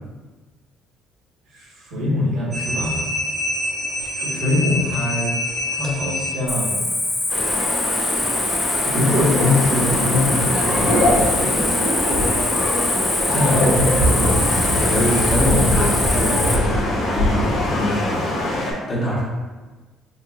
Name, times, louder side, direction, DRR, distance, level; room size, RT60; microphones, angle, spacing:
voice 1, 1.5-3.1 4.1-5.3 5.7-6.8 7.8-8.5 8.8-11.7 13.2-15.1, left 2 dB, 80° right, -5 dB, 1.4 m, -23 dB
sound 1, 2.5-6.8, left 2 dB, 30° right, 0.8 m, -26 dB
Cricket, 6.5-16.6, left 2 dB, 15° left, 0.5 m, -23 dB
sound 2, 7.3-18.7, left 1 dB, 90° left, 1.4 m, -22 dB
voice 2, 14.8-19.2, equal, 35° left, -7 dB, 1.2 m, -24 dB
5.6 x 2.6 x 2.4 m, 1.3 s
cardioid pair, 125°, 0 cm